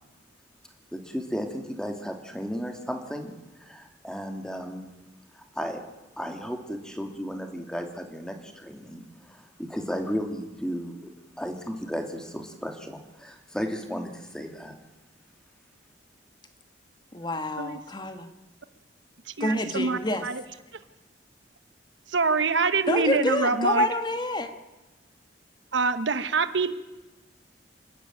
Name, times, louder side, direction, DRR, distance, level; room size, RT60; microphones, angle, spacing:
voice 1, 0.9-3.3 3.6-4.9 5.3-5.8 6.2-11.1 11.4-14.7, equal, 5° left, 4 dB, 2.4 m, -34 dB
voice 2, 17.1-18.3 19.4-20.3 22.9-24.5, left 1 dB, 25° left, 8 dB, 1.5 m, -27 dB
voice 3, 19.3-20.4 22.1-23.9 25.7-26.7, right 4 dB, 80° right, 11 dB, 1.1 m, -25 dB
27.5 x 12.0 x 9.0 m, 1.1 s
head